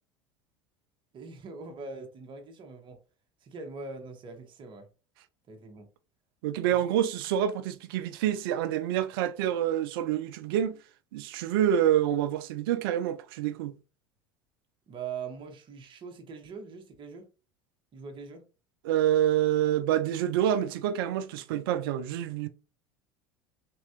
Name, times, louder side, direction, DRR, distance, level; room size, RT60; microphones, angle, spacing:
voice 1, 1.1-3.0 3.4-4.9 5.5-5.9 6.7-6.9 14.9-17.2 17.9-18.4, right 5 dB, 40° right, 1.4 m, -42 dB
voice 2, 6.4-10.7 11.1-13.7 18.8-22.5, right 11 dB, 75° right, 0.5 m, -27 dB
3.8 x 2.9 x 3.0 m
hypercardioid pair, 80°, 12 cm